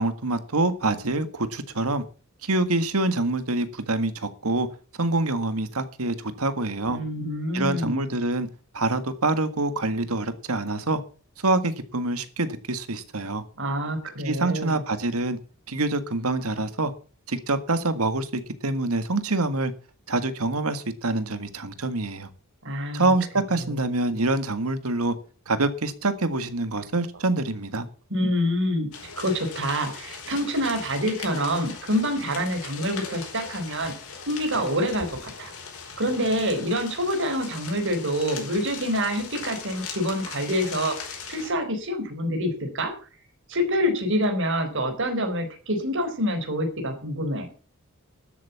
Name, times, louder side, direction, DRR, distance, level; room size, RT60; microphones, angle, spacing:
voice 1, 0.0-2.0 2.4-4.7 5.0-7.0 7.5-8.5 8.7-11.0 11.4-13.4 14.2-15.4 15.7-16.9 17.3-19.7 20.1-22.3 22.9-25.1 25.5-27.9, right 2 dB, 80° right, 1.7 m, -26 dB
voice 2, 6.9-8.0 13.6-14.8 22.6-23.1 23.6-24.2 28.1-33.9 34.3-35.5 36.0-42.9 43.5-47.5, equal, 60° right, 4.2 m, -27 dB
sound 1, 28.9-41.5, left 5 dB, 75° left, 5.1 m, -39 dB
13.0 x 8.2 x 7.1 m
head